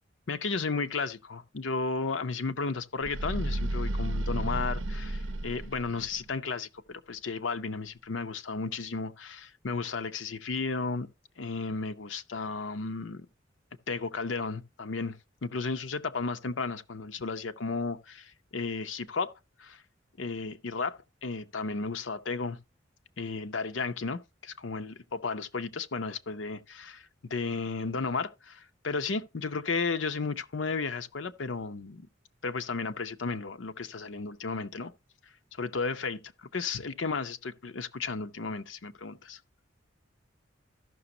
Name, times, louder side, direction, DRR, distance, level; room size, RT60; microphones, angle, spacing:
voice 1, 0.3-11.1 11.4-13.3 13.9-15.2 15.4-19.3 19.6-19.8 20.2-22.6 23.2-32.0 32.4-34.9 35.6-39.4, left 4 dB, 80° left, 0.7 m, -34 dB
sound 1, 3.0-6.3, right 1 dB, 80° right, 0.6 m, -32 dB
14.0 x 6.0 x 2.8 m
head